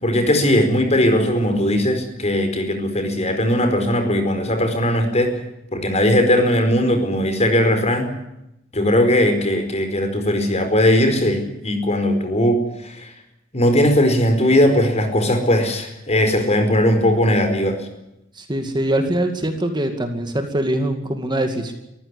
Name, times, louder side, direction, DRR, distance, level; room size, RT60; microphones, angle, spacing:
voice 1, 0.0-5.4 5.7-8.1 8.7-13.1 13.5-17.8, left 1 dB, 35° left, 7 dB, 4.8 m, -18 dB
voice 2, 18.4-21.7, right 1 dB, 25° right, 5 dB, 2.3 m, -23 dB
24.0 x 15.5 x 9.9 m, 0.88 s
head